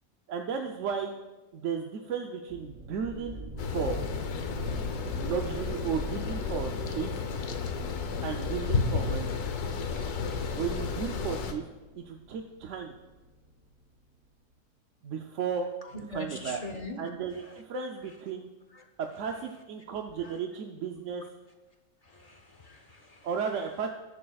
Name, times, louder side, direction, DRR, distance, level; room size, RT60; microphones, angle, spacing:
voice 1, 0.3-1.1 1.5-4.0 5.2-7.2 8.2-9.3 10.5-11.6 12.0-13.0 15.0-15.7 16.1-16.6 17.0-18.5 19.0-21.2 23.2-23.9, right 6 dB, 65° right, 3 dB, 0.9 m, -34 dB
sound 1, 2.5-13.9, right 1 dB, 35° right, 1.5 m, -44 dB
sound 2, 3.6-11.5, left 5 dB, 85° left, 1.4 m, -32 dB
voice 2, 15.8-17.0 17.4-17.6 18.7-18.8 20.2-20.4 22.0-23.3, left 1 dB, 40° left, 5 dB, 0.6 m, -42 dB
19.5 x 7.6 x 2.4 m, 1.1 s
omnidirectional pair, 1.6 m